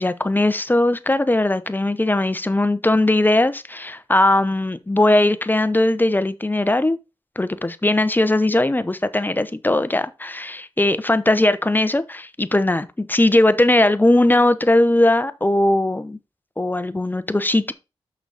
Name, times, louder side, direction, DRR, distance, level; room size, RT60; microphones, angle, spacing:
voice 1, 0.0-7.0 7.4-16.2 16.6-17.7, left 1 dB, 20° left, 0.9 m, -19 dB
6.4 x 6.1 x 4.1 m
cardioid pair, 45°, 10 cm